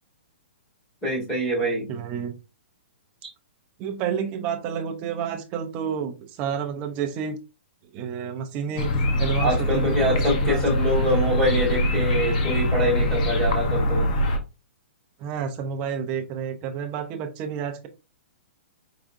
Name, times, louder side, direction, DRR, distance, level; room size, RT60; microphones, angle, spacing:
voice 1, 1.0-1.9 9.4-14.1, equal, 5° left, -6 dB, 2.3 m, -25 dB
voice 2, 1.9-2.3 3.8-7.4 7.9-8.9 9.2-10.6 15.2-17.9, right 7 dB, 20° right, 4 dB, 0.5 m, -30 dB
sound 1, 8.8-14.4, left 1 dB, 35° left, 0.8 m, -23 dB
4.9 x 3.6 x 2.5 m, 0.28 s
hypercardioid pair, 175°, 7 cm